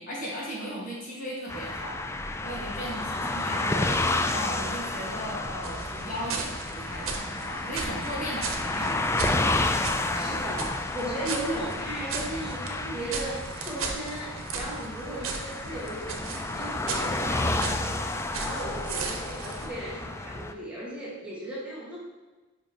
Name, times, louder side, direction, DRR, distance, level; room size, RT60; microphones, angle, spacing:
voice 1, 0.0-2.0 2.4-9.0 9.9-10.7, equal, 40° left, -5 dB, 1.9 m, -37 dB
sound 1, 1.5-20.5, left 2 dB, 15° left, 0.3 m, -31 dB
voice 2, 2.9-3.5 9.8-22.0, right 1 dB, 5° right, -7 dB, 1.6 m, -36 dB
sound 2, 5.6-19.7, right 4 dB, 85° right, 0.9 m, -37 dB
5.1 x 5.1 x 5.2 m, 1.2 s
head